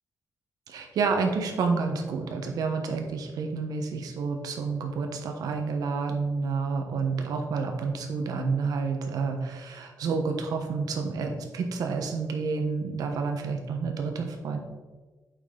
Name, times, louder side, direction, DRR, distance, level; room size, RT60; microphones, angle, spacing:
voice 1, 0.7-14.6, right 4 dB, 80° right, 4 dB, 1.2 m, -29 dB
8.2 x 5.4 x 3.9 m, 1.3 s
wide cardioid pair, 160°, 6 cm